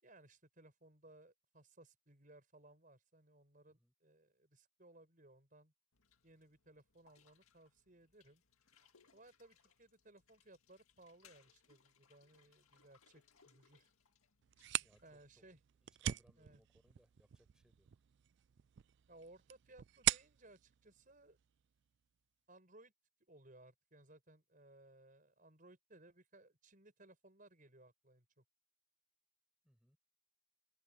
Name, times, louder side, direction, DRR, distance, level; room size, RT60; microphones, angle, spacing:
voice 1, 0.0-5.7 6.2-8.4 9.1-13.9 15.0-15.6 16.4-16.6 19.1-21.4 22.5-22.9 23.3-28.4, right 2 dB, 40° right, 5.7 m, -63 dB
sound 1, 5.9-15.2, left 6 dB, 90° left, 2.2 m, -71 dB
sound 2, 14.4-22.0, right 13 dB, 55° right, 0.3 m, -43 dB
voice 2, 14.8-15.4 16.0-17.9 29.6-30.0, equal, 5° right, 5.9 m, -71 dB
head